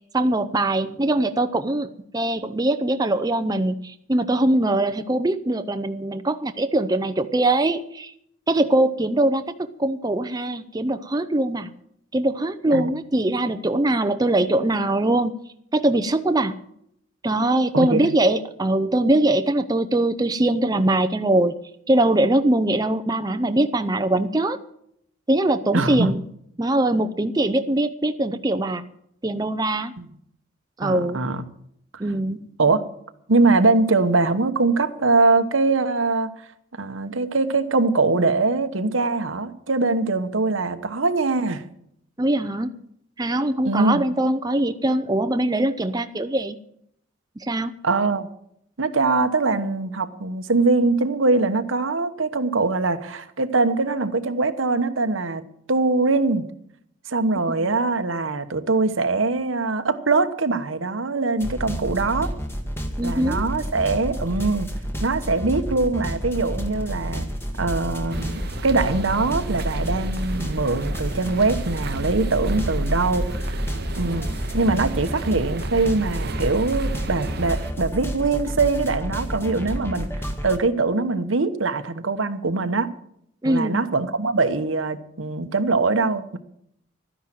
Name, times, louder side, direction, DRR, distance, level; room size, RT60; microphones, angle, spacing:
voice 1, 0.1-8.1 8.5-11.7 12.1-15.3 15.7-16.5 17.2-21.5 21.9-24.6 25.3-26.2 26.6-28.8 29.2-29.9 30.8-31.2 32.0-32.5 42.2-42.7 43.2-46.6 47.4-47.7 57.5-57.7 63.0-63.4 83.4-83.8, right 1 dB, 20° right, 0.6 m, -22 dB
voice 2, 17.7-18.1 25.7-26.2 30.0-30.1 30.8-31.4 32.6-32.9 33.3-36.3 36.8-41.6 43.6-44.0 47.8-48.3 48.8-55.4 55.7-56.5 57.1-62.3 63.0-64.7 65.0-67.3 67.6-73.6 74.0-74.3 74.5-80.1 80.4-82.9 83.4-86.4, right 3 dB, 85° right, 1.1 m, -22 dB
sound 1, 61.4-80.6, equal, 10° left, 1.3 m, -30 dB
sound 2, 68.1-77.7, right 2 dB, 55° right, 0.8 m, -32 dB
12.5 x 10.5 x 7.7 m
head